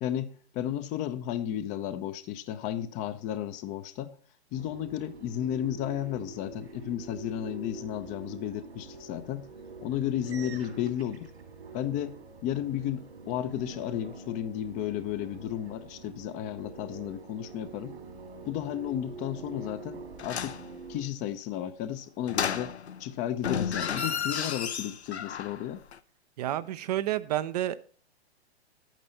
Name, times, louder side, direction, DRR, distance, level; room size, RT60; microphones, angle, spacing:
voice 1, 0.0-4.1 4.5-9.5 9.8-11.3 11.7-18.0 18.5-20.5 20.9-22.7 23.0-25.8, left 11 dB, 20° left, 0.6 m, -33 dB
sound 1, 4.5-21.0, right 3 dB, 70° right, 2.4 m, -45 dB
sound 2, 20.2-20.7 22.3-23.0 23.4-25.6 25.9-26.0, left 7 dB, 75° left, 0.8 m, -32 dB
voice 2, 26.4-27.8, right 13 dB, 40° right, 0.5 m, -29 dB
11.0 x 9.0 x 4.1 m
figure-of-eight pair, 110°, 33 cm